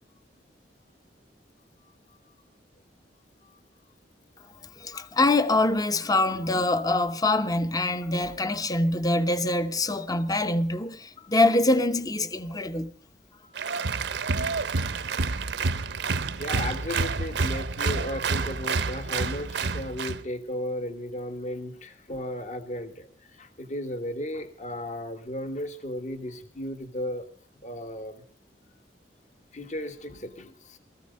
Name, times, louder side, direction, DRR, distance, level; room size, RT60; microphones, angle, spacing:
voice 1, 1.8-2.2 3.4-3.6 8.1-8.3 13.4-13.5 16.4-23.1 23.4-27.3 27.6-28.2 29.5-30.8, left 1 dB, 45° left, 1.5 m, -35 dB
voice 2, 4.8-12.9, left 2 dB, 20° left, 0.8 m, -24 dB
Applause, 13.5-20.2, right 4 dB, 70° right, 0.8 m, -28 dB
19.0 x 14.0 x 5.3 m
head